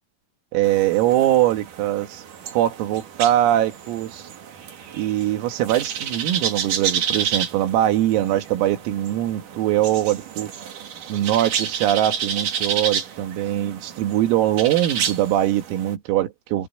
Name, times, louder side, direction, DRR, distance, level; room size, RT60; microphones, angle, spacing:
voice 1, 0.5-2.2 2.5-4.3 4.9-10.5 11.1-16.7, right 13 dB, 80° right, 4.5 m, -22 dB
sound 1, 0.6-15.9, right 8 dB, 50° right, 2.9 m, -30 dB
omnidirectional pair, 6.0 m